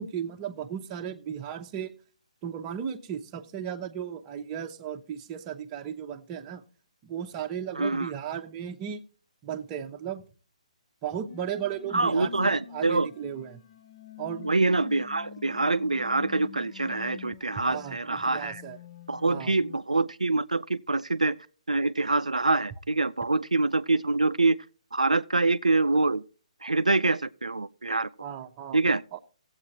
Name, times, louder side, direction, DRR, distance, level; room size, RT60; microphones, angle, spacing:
voice 1, 0.0-1.9 2.4-6.6 7.0-9.0 9.4-10.2 11.0-13.6 14.2-14.5 17.6-18.8 19.2-19.5 28.2-29.2, right 9 dB, 25° right, 0.8 m, -35 dB
voice 2, 7.8-8.1 11.9-13.1 14.4-18.6 19.1-21.4 21.7-24.6 24.9-26.2 26.6-28.1 28.7-29.0, right 3 dB, 90° right, 0.4 m, -25 dB
sound 1, 11.3-19.8, left 11 dB, 40° left, 0.6 m, -47 dB
18.0 x 8.0 x 2.8 m
figure-of-eight pair, 140°, 4 cm